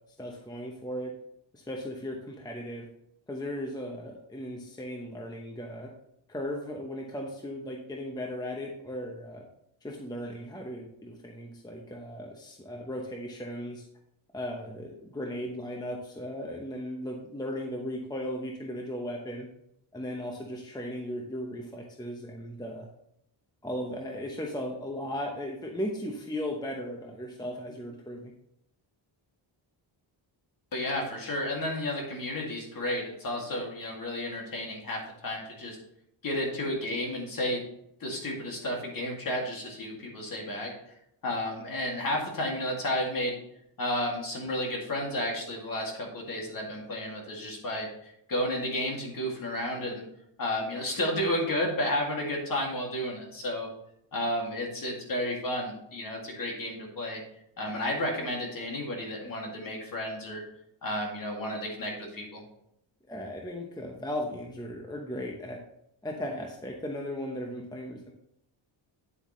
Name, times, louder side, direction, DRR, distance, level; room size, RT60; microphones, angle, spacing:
voice 1, 0.2-1.1 1.5-2.9 3.3-5.9 6.3-9.5 9.8-13.8 14.3-19.5 19.9-22.9 23.6-28.3 63.1-65.6 66.0-68.1, equal, 10° left, 0 dB, 0.8 m, -36 dB
voice 2, 30.7-35.8 36.2-37.6 38.0-40.7 41.2-43.4 43.8-50.0 50.4-53.7 54.1-57.2 57.6-60.4 60.8-62.4, left 1 dB, 45° left, 0 dB, 2.3 m, -32 dB
9.3 x 7.9 x 3.1 m, 0.78 s
wide cardioid pair, 165°, 48 cm